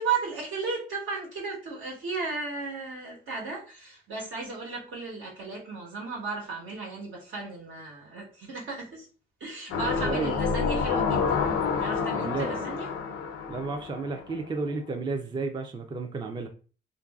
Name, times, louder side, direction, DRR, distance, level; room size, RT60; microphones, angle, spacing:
voice 1, 0.0-9.1 9.4-11.4 11.8-12.9, right 4 dB, 75° right, 1.3 m, -35 dB
sound 1, 9.7-14.6 15.0-15.1, left 5 dB, 90° left, 0.5 m, -28 dB
voice 2, 10.0-10.6 12.1-12.7 13.5-16.5, right 4 dB, 25° right, 0.4 m, -32 dB
3.0 x 2.5 x 2.3 m
cardioid pair, 90°, 20 cm